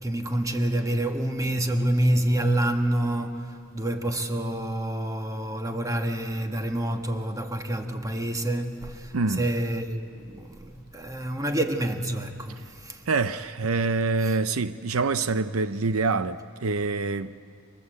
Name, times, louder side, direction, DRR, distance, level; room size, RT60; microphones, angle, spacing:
voice 1, 0.0-13.1 14.2-14.3, right 1 dB, 15° right, 1.6 m, -27 dB
voice 2, 9.1-9.4 13.1-17.3, right 3 dB, 75° right, 0.7 m, -26 dB
30.0 x 24.5 x 8.2 m
head